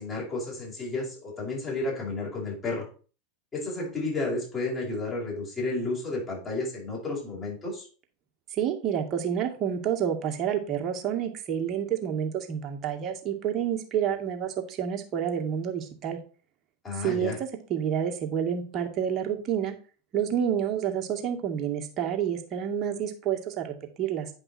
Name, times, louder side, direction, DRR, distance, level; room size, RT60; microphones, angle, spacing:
voice 1, 0.0-2.9 3.5-7.9 16.8-17.4, left 2 dB, 30° left, -4 dB, 5.4 m, -32 dB
voice 2, 8.5-16.2 17.0-19.7 20.1-24.3, right 9 dB, 40° right, 3 dB, 2.1 m, -29 dB
9.6 x 5.3 x 4.4 m, 0.37 s
hypercardioid pair, 90°, 0 cm